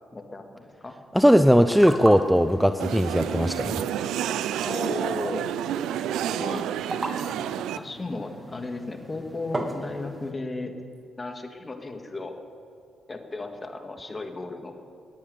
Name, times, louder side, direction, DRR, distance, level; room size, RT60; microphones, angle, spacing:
voice 1, 0.1-1.0 3.2-3.9 4.7-5.5 6.3-6.7 7.8-10.7 11.2-12.4 13.1-14.7, left 2 dB, 30° left, 5 dB, 2.2 m, -35 dB
voice 2, 1.1-3.8, equal, ahead, 10 dB, 0.6 m, -19 dB
sound 1, 1.4-10.3, right 2 dB, 30° right, 1.8 m, -38 dB
sound 2, 2.8-7.8, right 10 dB, 75° right, 0.4 m, -29 dB
19.0 x 10.0 x 7.1 m, 2.5 s
hypercardioid pair, 45°, 0 cm